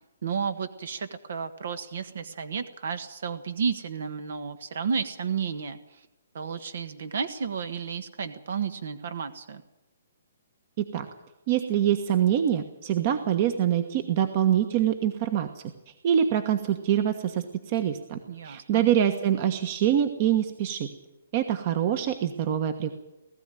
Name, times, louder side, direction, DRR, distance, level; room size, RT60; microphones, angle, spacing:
voice 1, 0.2-6.1 6.3-9.6 18.3-18.9, right 6 dB, 70° right, 10 dB, 1.4 m, -32 dB
voice 2, 11.5-20.9 21.3-22.9, right 10 dB, 35° right, 8 dB, 1.3 m, -25 dB
19.5 x 14.5 x 9.1 m, 0.95 s
hypercardioid pair, 160°, 0 cm